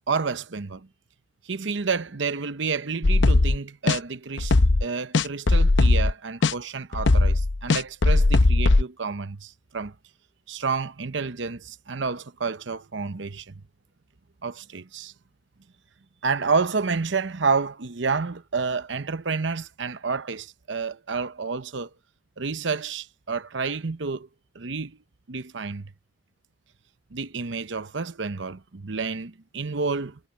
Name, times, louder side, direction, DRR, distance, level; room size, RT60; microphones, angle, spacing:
voice 1, 0.1-0.9 1.5-9.9 10.5-13.5 14.4-15.1 16.2-21.9 22.4-24.3 24.5-25.0 25.3-25.9 27.1-30.2, right 4 dB, 80° right, 0.9 m, -29 dB
sound 1, 3.0-3.6 3.9-4.0 4.4-4.8 5.1-6.1 6.4-6.5 6.9-8.8, left 2 dB, 75° left, 0.7 m, -18 dB
head